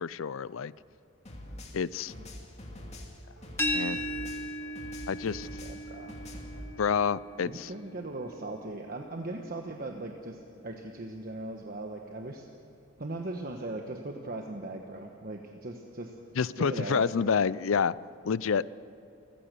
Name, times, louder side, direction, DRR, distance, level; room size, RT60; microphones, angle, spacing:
voice 1, 0.0-0.7 1.7-2.1 3.7-4.0 5.1-5.5 6.8-7.7 16.4-17.9 18.2-18.7, left 6 dB, 70° left, 19 dB, 0.5 m, -28 dB
sound 1, 1.2-4.5 4.7-6.6, left 1 dB, 35° left, 2.5 m, -44 dB
sound 2, 2.1-2.4 2.7-3.0 3.4-3.7 4.0-4.9 5.3-5.6 5.9-6.2 6.5-7.2, right 2 dB, 65° right, 2.9 m, -56 dB
sound 3, 3.6-9.3, equal, 10° left, 1.3 m, -37 dB
voice 2, 5.6-6.2 7.4-12.5 13.0-16.1 16.6-17.1, right 2 dB, 45° right, 3 dB, 1.2 m, -39 dB
28.5 x 15.5 x 6.8 m, 2.8 s
head